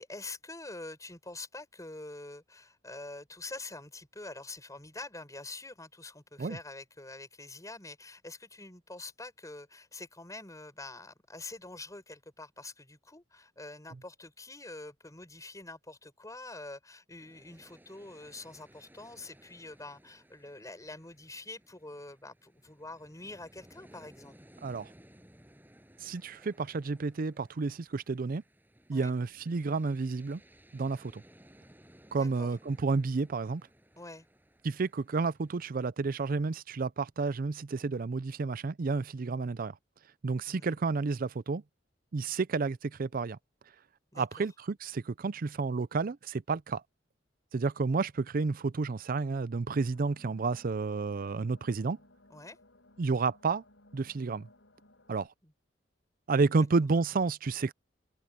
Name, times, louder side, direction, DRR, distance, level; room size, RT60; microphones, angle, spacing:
voice 1, 0.0-24.4 28.9-29.1 32.2-32.5 34.0-34.3 40.5-40.7 44.1-44.5 52.3-52.6 55.4-55.5, left 2 dB, 20° left, 6.4 m, -46 dB
sound 1, 17.2-35.6, equal, 10° right, 7.4 m, -60 dB
voice 2, 26.0-28.4 28.9-30.4 30.7-31.2 32.1-33.6 34.6-39.8 40.2-41.6 42.1-43.4 44.1-46.8 47.5-52.0 53.0-53.6 53.9-54.5 55.1-55.3 56.3-57.7, right 4 dB, 50° right, 0.5 m, -31 dB
sound 2, 49.7-55.3, left 1 dB, 90° left, 6.4 m, -61 dB
open air
head